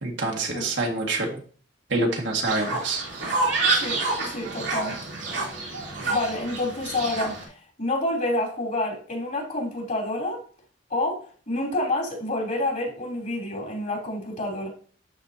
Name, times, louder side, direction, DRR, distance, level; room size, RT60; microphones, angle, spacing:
voice 1, 0.0-1.4 1.9-3.0, right 2 dB, 70° right, 1.9 m, -26 dB
Fowl, 2.4-7.4, right 3 dB, 85° right, 3.1 m, -28 dB
voice 2, 3.7-5.0 6.1-7.3 7.8-10.4 10.9-14.7, left 1 dB, 45° left, 3.2 m, -28 dB
12.5 x 4.2 x 2.8 m
head